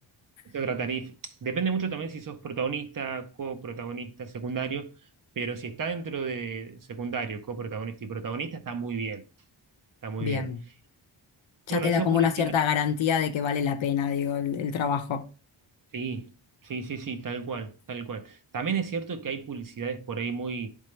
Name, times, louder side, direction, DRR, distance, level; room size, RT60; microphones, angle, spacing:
voice 1, 0.4-4.9 5.4-9.2 10.0-10.5 11.7-12.5 15.9-16.3 16.6-20.7, right 5 dB, 45° right, 0.8 m, -33 dB
voice 2, 10.2-10.6 11.7-15.2, left 7 dB, 80° left, 0.8 m, -26 dB
10.5 x 3.6 x 3.2 m
wide cardioid pair, 125°, 46 cm